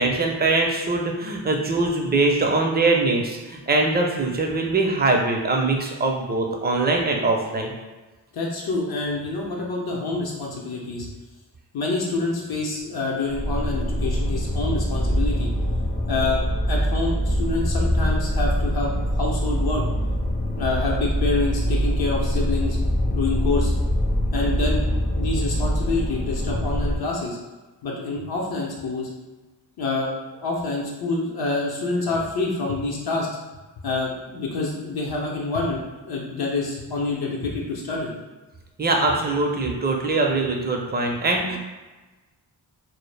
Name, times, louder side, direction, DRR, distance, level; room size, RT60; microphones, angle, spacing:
voice 1, 0.0-7.7 38.8-41.6, right 3 dB, 25° right, 1 dB, 0.5 m, -22 dB
voice 2, 8.3-11.1 11.7-15.5 16.1-16.4 16.7-20.0 20.6-22.8 23.1-23.7 24.3-27.4 27.8-29.1 29.8-30.1 30.4-33.3 33.8-35.8 36.1-38.1, left 3 dB, 60° left, -2 dB, 0.7 m, -27 dB
sound 1, 13.3-27.0, equal, 25° left, 0.5 m, -24 dB
2.0 x 2.0 x 3.2 m, 1.2 s
cardioid pair, 50°, 42 cm